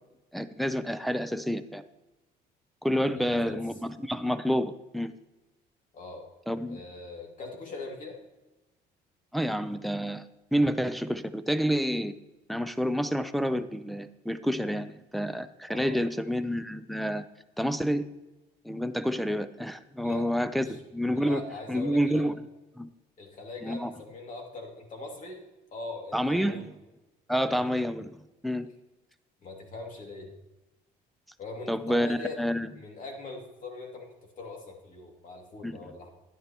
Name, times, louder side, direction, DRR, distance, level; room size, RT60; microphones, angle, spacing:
voice 1, 0.3-1.8 2.8-3.7 4.0-5.1 6.5-6.8 9.3-10.3 10.5-12.1 12.5-17.2 17.6-18.1 18.6-21.4 21.7-22.4 22.8-22.9 23.6-23.9 26.1-26.6 27.3-28.7 31.7-32.7 35.6-35.9, equal, ahead, 9 dB, 0.5 m, -29 dB
voice 2, 3.1-3.6 5.9-6.3 6.7-8.2 15.7-16.0 20.0-20.3 20.5-20.8 21.1-22.2 23.2-25.4 25.7-26.7 27.3-27.7 29.4-30.3 31.4-32.4 32.7-36.1, left 3 dB, 50° left, 1 dB, 2.5 m, -41 dB
11.0 x 10.0 x 3.0 m, 1.1 s
cardioid pair, 110°, 17 cm